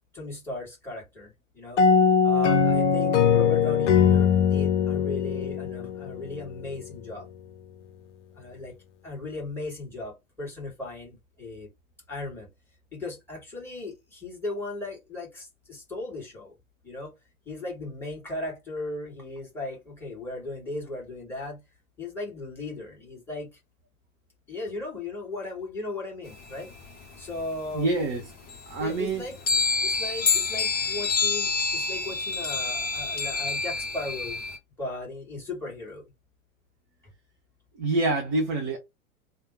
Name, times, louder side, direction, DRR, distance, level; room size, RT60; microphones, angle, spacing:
voice 1, 0.1-1.8 2.2-7.3 8.3-8.8 9.0-11.7 12.1-12.5 12.9-16.6 16.8-17.1 17.5-21.6 22.0-23.5 24.5-26.7 27.2-27.9 28.8-29.3 29.8-34.4 34.8-36.0, left 2 dB, 5° left, 1.9 m, -37 dB
sound 1, 1.8-6.4, left 6 dB, 60° left, 0.7 m, -21 dB
sound 2, 26.3-27.8 28.1-28.2 28.5-34.6, left 4 dB, 25° left, 1.0 m, -27 dB
voice 2, 27.7-28.2 28.7-29.3 37.8-38.8, right 2 dB, 15° right, 0.3 m, -26 dB
3.4 x 2.2 x 3.9 m
figure-of-eight pair, 95°, 41 cm